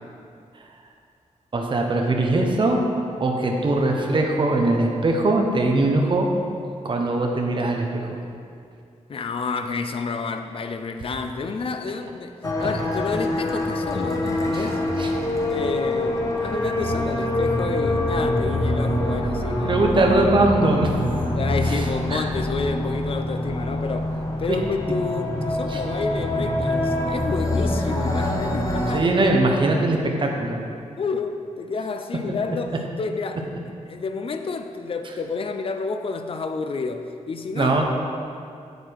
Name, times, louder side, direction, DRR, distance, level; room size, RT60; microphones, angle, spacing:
voice 1, 1.5-2.8 3.2-6.3 6.8-8.2 14.5-14.6 15.0-15.1 19.6-21.1 21.6-22.3 24.5-24.6 25.7-25.8 28.9-30.6 37.6-37.8, right 2 dB, 40° right, 1 dB, 1.0 m, -21 dB
voice 2, 9.1-14.8 15.5-20.4 21.3-24.1 24.4-29.1 31.0-33.5 33.9-37.8, left 4 dB, 45° left, 7 dB, 0.6 m, -30 dB
sound 1, 12.4-29.0, left 1 dB, 25° left, 1.0 m, -25 dB
8.3 x 8.0 x 4.7 m, 2.4 s
wide cardioid pair, 160°, 13 cm